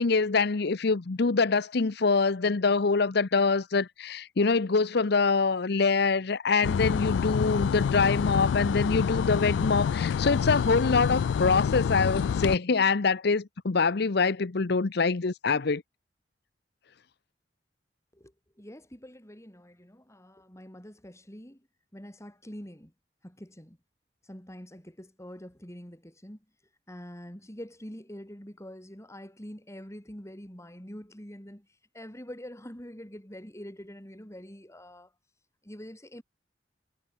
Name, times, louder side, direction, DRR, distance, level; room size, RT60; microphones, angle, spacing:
voice 1, 0.0-15.8, left 4 dB, 65° left, 0.8 m, -25 dB
sound 1, 6.6-12.6, left 7 dB, 85° left, 0.3 m, -27 dB
voice 2, 18.6-21.6 21.9-22.9 23.2-23.8 24.3-26.4 26.9-31.7 31.9-35.1 35.6-36.2, equal, 15° left, 5.7 m, -45 dB
head